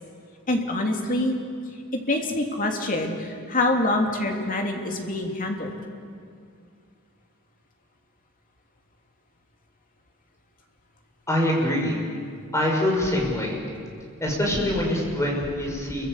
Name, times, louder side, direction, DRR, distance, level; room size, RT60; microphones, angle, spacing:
voice 1, 0.5-1.4 2.1-5.8, left 2 dB, 40° left, 2 dB, 3.2 m, -25 dB
voice 2, 11.3-12.0 12.5-13.6 14.2-16.1, left 1 dB, 15° left, -1 dB, 6.0 m, -24 dB
28.5 x 23.5 x 8.3 m, 2.2 s
head